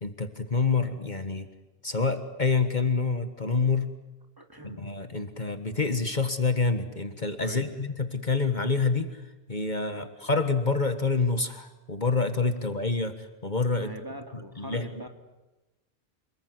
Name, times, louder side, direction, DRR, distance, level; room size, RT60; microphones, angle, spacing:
voice 1, 0.0-1.5 1.8-3.9 4.6-13.9 14.3-14.9, left 4 dB, 45° left, 8 dB, 1.7 m, -27 dB
voice 2, 4.4-4.9 7.4-7.8 9.9-10.1 13.8-15.1, equal, 20° right, 4 dB, 2.7 m, -42 dB
28.5 x 21.0 x 9.6 m, 1.1 s
omnidirectional pair, 1.1 m